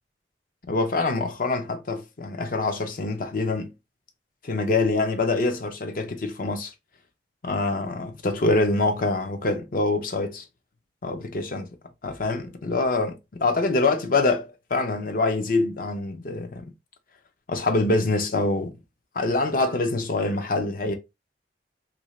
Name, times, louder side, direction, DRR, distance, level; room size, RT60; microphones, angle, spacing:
voice 1, 0.7-3.7 4.4-6.7 7.4-10.4 11.0-11.6 12.0-16.7 17.5-18.7 19.1-20.9, left 3 dB, 50° left, 0.6 m, -25 dB
2.7 x 2.6 x 3.0 m
head